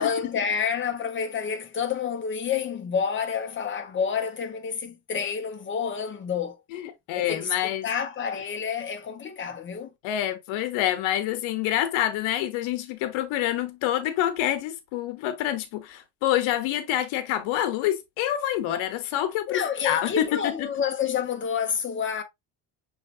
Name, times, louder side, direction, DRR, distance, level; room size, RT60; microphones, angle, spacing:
voice 1, 0.0-6.6 7.1-9.9 19.5-22.2, left 7 dB, 25° left, 0.8 m, -29 dB
voice 2, 6.7-7.9 10.0-20.7, left 12 dB, 85° left, 0.9 m, -27 dB
6.4 x 3.2 x 2.4 m
cardioid pair, 145°, 46 cm